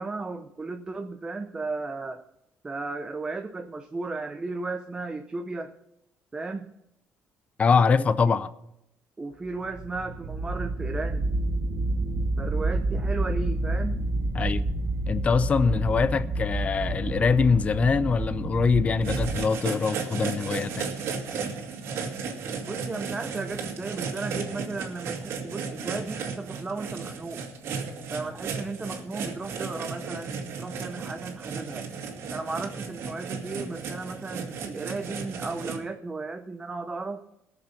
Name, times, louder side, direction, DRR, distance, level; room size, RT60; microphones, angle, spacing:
voice 1, 0.0-2.2 2.6-5.7 6.3-6.7 7.9-8.4 9.2-11.3 12.4-14.0 22.6-27.4 28.1-31.9 32.3-37.2, right 3 dB, 20° right, 6 dB, 0.7 m, -35 dB
voice 2, 7.6-8.5 14.3-14.6 15.1-20.9, left 5 dB, 30° left, 14 dB, 0.5 m, -23 dB
sound 1, 9.5-19.5, right 2 dB, 55° right, 1.0 m, -29 dB
sound 2, 19.0-35.8, right 5 dB, 70° right, 2.1 m, -35 dB
18.0 x 6.9 x 5.8 m, 0.82 s
cardioid pair, 130°, 5 cm